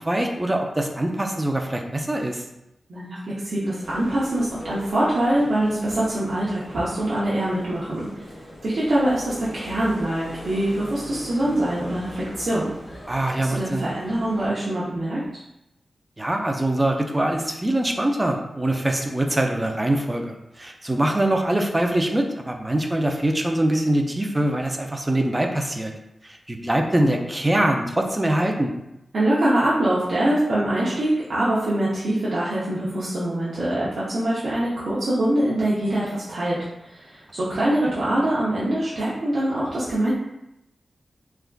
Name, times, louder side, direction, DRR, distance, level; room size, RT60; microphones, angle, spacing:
voice 1, 0.0-2.4 13.1-13.8 16.2-25.9 26.2-28.7, right 1 dB, 20° right, 3 dB, 0.4 m, -23 dB
voice 2, 2.9-8.1 8.6-12.7 13.4-15.4 29.1-36.6 36.8-40.1, right 1 dB, 70° right, -9 dB, 0.6 m, -24 dB
sound 1, 3.8-14.5, equal, 35° left, 1.2 m, -40 dB
3.3 x 2.3 x 2.2 m, 0.88 s
cardioid pair, 55°, 0 cm